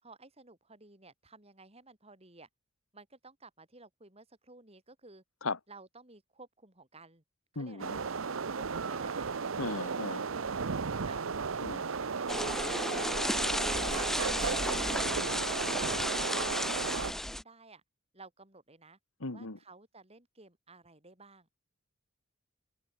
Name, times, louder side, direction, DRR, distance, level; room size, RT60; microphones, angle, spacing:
voice 1, 0.0-2.5 2.9-5.2 5.7-7.2 7.5-8.1 8.5-9.3 9.8-11.2 11.5-14.1 14.5-14.7 16.4-17.8 18.1-19.0 19.3-21.5, right 3 dB, 30° right, 5.6 m, -54 dB
voice 2, 7.6-8.0 9.6-10.2 11.6-11.8 19.2-19.6, left 3 dB, 90° left, 2.2 m, -36 dB
sound 1, 7.8-17.1, right 5 dB, 75° right, 0.8 m, -35 dB
sound 2, 12.3-17.4, left 1 dB, ahead, 0.3 m, -33 dB
head